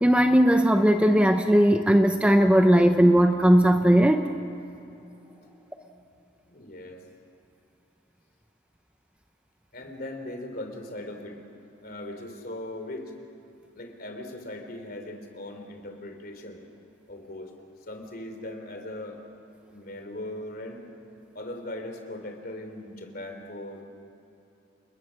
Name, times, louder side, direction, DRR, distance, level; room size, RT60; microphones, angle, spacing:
voice 1, 0.0-4.2, equal, 5° right, 6 dB, 0.7 m, -18 dB
voice 2, 6.5-7.0 9.7-11.4 11.8-13.1 13.7-16.6 17.1-17.5 17.9-19.2 19.7-20.8 21.3-23.8, left 1 dB, 50° left, 5 dB, 3.2 m, -39 dB
29.5 x 21.0 x 6.4 m, 2.9 s
head